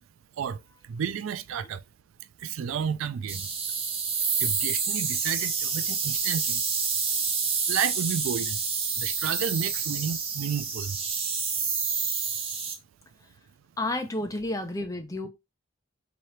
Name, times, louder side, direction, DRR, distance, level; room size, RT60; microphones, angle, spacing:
voice 1, 0.9-1.8 2.4-3.5 4.4-6.6 7.7-8.6 9.0-11.0, right 7 dB, 75° right, 0.3 m, -31 dB
sound 1, 3.3-12.7, right 5 dB, 30° right, 0.7 m, -28 dB
voice 2, 13.8-15.3, left 2 dB, 15° left, 0.6 m, -31 dB
3.7 x 3.0 x 3.2 m
head